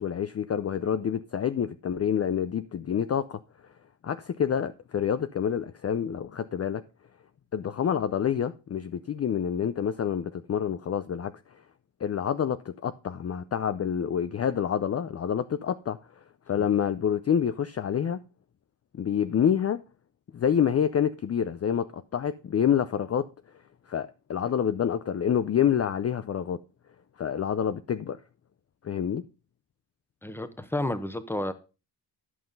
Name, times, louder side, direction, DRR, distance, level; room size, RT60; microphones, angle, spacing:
voice 1, 0.0-3.4 4.0-6.8 7.5-11.3 12.0-16.0 16.5-18.2 19.0-19.8 20.3-23.3 23.9-26.6 27.2-28.2 28.8-29.2, left 8 dB, 35° left, 0.5 m, -27 dB
voice 2, 30.2-31.5, left 1 dB, 5° left, 1.0 m, -31 dB
11.0 x 5.8 x 5.3 m
cardioid pair, 105°, 43 cm